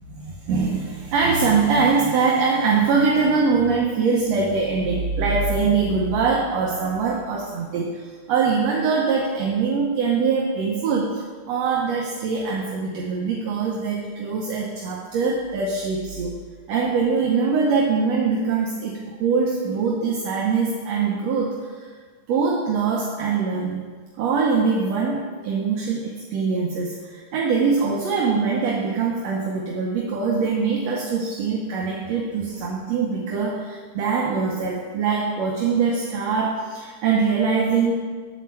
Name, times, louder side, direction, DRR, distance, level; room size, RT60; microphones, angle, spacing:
voice 1, 0.2-16.4 16.7-21.9 22.3-23.9 24.2-37.9, right 5 dB, 70° right, -2 dB, 1.8 m, -23 dB
9.4 x 4.4 x 7.3 m, 1.5 s
omnidirectional pair, 3.6 m